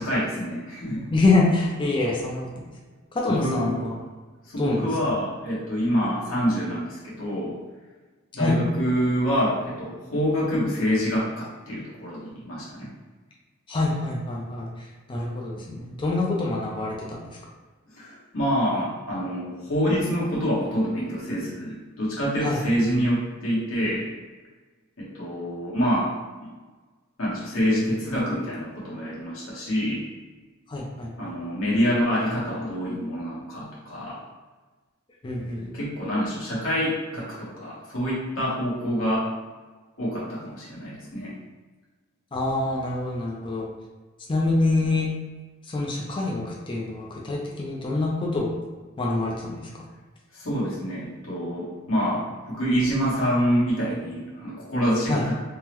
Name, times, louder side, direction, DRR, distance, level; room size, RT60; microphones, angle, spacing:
voice 1, 0.0-1.1 3.3-3.9 4.5-7.6 8.3-12.9 17.9-24.1 25.0-26.1 26.4-26.5 27.2-30.1 31.2-34.2 35.7-39.3 40.0-41.3 50.3-55.3, equal, 75° left, -7 dB, 1.2 m, -26 dB
voice 2, 1.1-2.5 3.1-4.0 4.6-4.9 8.4-8.6 13.7-17.3 22.4-22.6 30.7-31.3 35.2-35.7 42.3-43.7 44.3-45.1 45.6-48.5 49.0-49.8 55.1-55.2, left 2 dB, 25° left, -2 dB, 0.4 m, -26 dB
3.6 x 2.0 x 2.9 m, 1.3 s
head